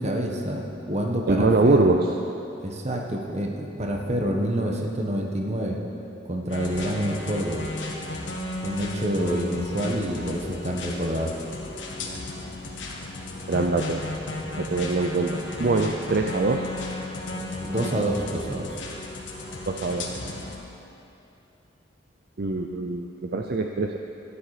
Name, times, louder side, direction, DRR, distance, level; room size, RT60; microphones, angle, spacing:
voice 1, 0.0-2.0 2.6-5.8 6.3-7.7 8.6-11.3 17.6-18.7, right 1 dB, 35° right, 1 dB, 1.2 m, -27 dB
voice 2, 1.3-2.0 13.5-14.0 14.6-16.7 19.7-20.1 22.4-24.0, right 3 dB, 55° right, 3 dB, 0.5 m, -23 dB
sound 1, 6.5-20.6, left 2 dB, 75° left, 1.5 m, -34 dB
13.0 x 10.0 x 4.9 m, 2.8 s
head